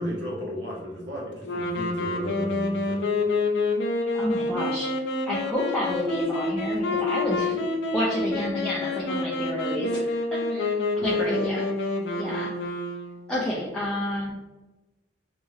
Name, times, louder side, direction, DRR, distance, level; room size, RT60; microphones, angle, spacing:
voice 1, 0.0-3.0 11.0-11.3, equal, 80° right, -4 dB, 1.1 m, -34 dB
sound 1, 1.4-13.3, left 3 dB, 75° left, 0.4 m, -28 dB
voice 2, 4.1-4.9 5.3-11.7 12.2-12.5 13.3-14.3, equal, 5° left, -7 dB, 0.4 m, -30 dB
2.9 x 2.6 x 2.4 m, 1.1 s
head